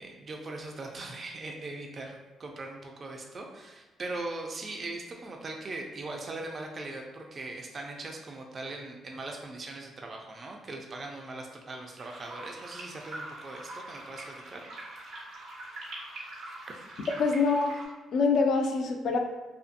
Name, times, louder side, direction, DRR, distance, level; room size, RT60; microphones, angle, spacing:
voice 1, 0.0-14.9 16.4-16.6, right 2 dB, 40° right, 1 dB, 0.3 m, -40 dB
sound 1, 12.0-17.9, right 1 dB, 90° right, 0.7 m, -43 dB
voice 2, 17.2-17.7 18.1-19.2, left 4 dB, 70° left, 3 dB, 0.3 m, -25 dB
2.6 x 2.4 x 2.4 m, 1.2 s
cardioid pair, 90°, 0 cm